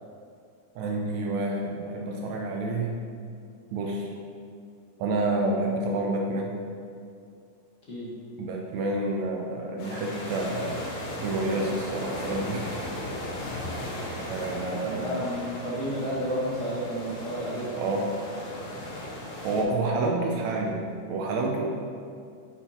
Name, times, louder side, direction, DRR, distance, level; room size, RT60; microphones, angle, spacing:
voice 1, 0.8-3.0 3.7-4.1 5.0-6.6 8.4-10.9 11.2-12.7 14.2-15.3 17.7-18.1 19.4-21.8, right 2 dB, 75° right, 0 dB, 1.9 m, -29 dB
sound 1, 9.8-19.6, left 1 dB, 80° left, 2.7 m, -36 dB
voice 2, 14.5-17.7, equal, 40° left, -7 dB, 1.2 m, -32 dB
6.9 x 4.6 x 4.2 m, 2.4 s
omnidirectional pair, 3.4 m